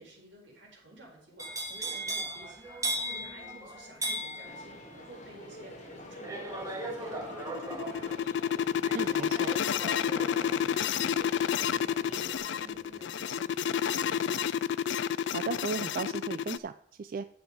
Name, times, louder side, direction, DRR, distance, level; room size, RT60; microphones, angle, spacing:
voice 1, 0.0-8.2 10.3-14.6, right 1 dB, 85° right, -3 dB, 4.2 m, -53 dB
sound 1, 1.4-13.4 13.7-14.1, right 1 dB, 20° right, 1.8 m, -39 dB
sound 2, 4.4-12.4, left 1 dB, 40° left, 1.8 m, -48 dB
sound 3, 7.2-16.6, left 8 dB, 70° left, 0.4 m, -30 dB
voice 2, 8.9-9.5 15.3-17.2, right 5 dB, 50° right, 11 dB, 0.4 m, -36 dB
10.5 x 7.3 x 4.6 m, 0.65 s
head